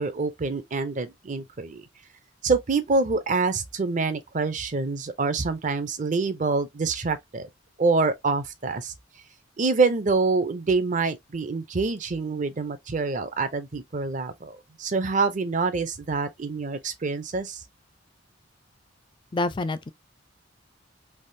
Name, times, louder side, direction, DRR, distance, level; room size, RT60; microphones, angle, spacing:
voice 1, 0.0-1.8 2.4-7.5 7.8-8.9 9.6-17.6, right 4 dB, 40° right, 0.5 m, -26 dB
voice 2, 19.3-19.9, left 2 dB, 25° left, 0.4 m, -27 dB
3.5 x 2.4 x 2.6 m
head